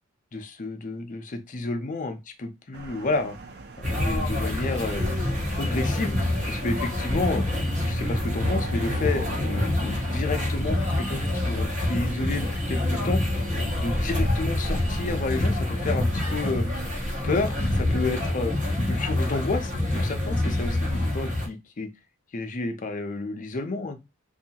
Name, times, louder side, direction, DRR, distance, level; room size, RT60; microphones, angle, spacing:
voice 1, 0.3-3.4 3.8-5.1 5.5-6.2 6.5-7.4 7.9-13.2 13.8-16.7 17.2-18.5 18.9-21.9 22.3-24.0, left 3 dB, 40° left, 6 dB, 0.5 m, -31 dB
sound 1, 2.7-19.1, right 2 dB, 50° right, 0.4 m, -41 dB
sound 2, 3.8-21.5, left 1 dB, 35° right, 1.0 m, -26 dB
2.7 x 2.3 x 2.8 m, 0.23 s
head